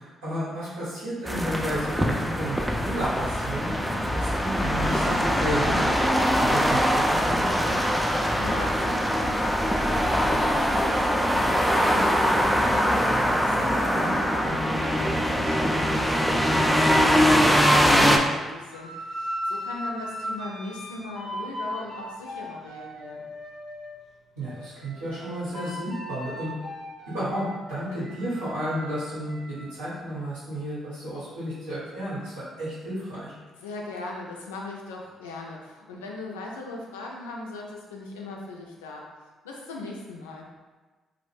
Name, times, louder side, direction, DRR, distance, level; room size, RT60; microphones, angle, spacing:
voice 1, 0.0-5.9 6.4-7.9 14.0-14.5 24.3-26.5 27.1-33.3, equal, 85° right, -10 dB, 1.1 m, -32 dB
sound 1, 1.3-18.2, equal, ahead, 0.3 m, -22 dB
voice 2, 8.4-23.3 33.6-39.0 39.4-40.5, left 2 dB, 80° left, -1 dB, 0.3 m, -39 dB
sound 2, 18.7-24.0 24.4-29.7, equal, 65° right, 0.8 m, -37 dB
2.4 x 2.1 x 3.3 m, 1.3 s
figure-of-eight pair, 40°, 0 cm